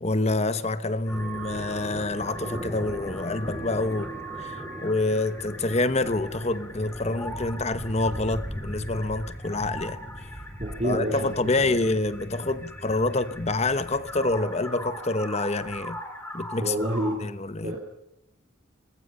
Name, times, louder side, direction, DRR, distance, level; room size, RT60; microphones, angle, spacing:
voice 1, 0.0-4.1 4.4-10.0 10.8-16.0 16.3-16.7 17.2-17.7, left 2 dB, 30° left, 1.0 m, -27 dB
sound 1, 1.1-17.2, equal, 10° left, 4.9 m, -38 dB
voice 2, 10.6-11.8 16.6-17.2 17.6-17.8, right 1 dB, 35° right, 3.2 m, -28 dB
24.0 x 20.5 x 5.5 m
head